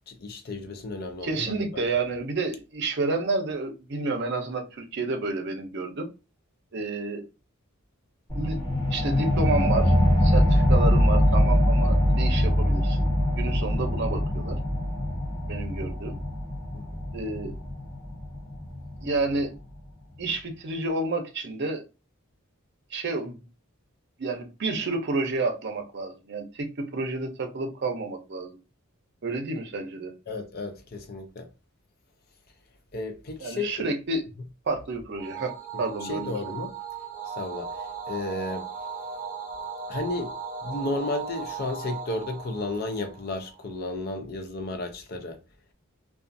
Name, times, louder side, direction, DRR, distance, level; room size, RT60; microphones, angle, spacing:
voice 1, 0.1-1.6 16.7-16.8 30.3-31.5 32.9-33.9 36.0-36.7 37.4-37.7 38.1-38.7 39.9-40.3 40.6-45.4, left 2 dB, 45° left, 0.5 m, -33 dB
voice 2, 1.2-6.1 6.7-7.2 8.3-8.6 8.9-10.0 10.2-13.1 13.4-14.6 15.5-16.2 17.1-17.5 19.0-19.5 20.2-21.8 22.9-23.5 24.2-28.6 29.2-30.1 33.4-34.3 34.7-36.6, right 3 dB, 55° right, 0.6 m, -30 dB
sound 1, 8.3-19.4, left 1 dB, 20° left, 0.9 m, -23 dB
sound 2, 35.2-43.8, right 6 dB, 15° right, 1.1 m, -37 dB
2.4 x 2.3 x 2.5 m
head